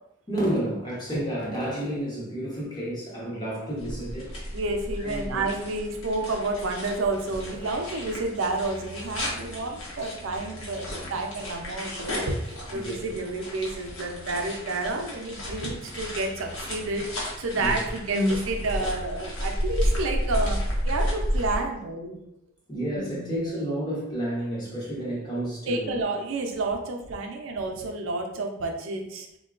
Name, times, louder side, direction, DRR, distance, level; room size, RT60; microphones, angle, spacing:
voice 1, 0.3-4.6 5.0-5.4 12.7-12.9 17.6-17.8 22.7-26.0, right 1 dB, 20° left, -6 dB, 0.9 m, -31 dB
sound 1, 3.8-21.6, equal, 85° left, 1.0 m, -33 dB
voice 2, 4.5-12.4 12.7-22.2 22.9-23.5 25.7-29.3, right 2 dB, 75° right, 3 dB, 0.5 m, -30 dB
3.8 x 2.2 x 2.4 m, 0.83 s
head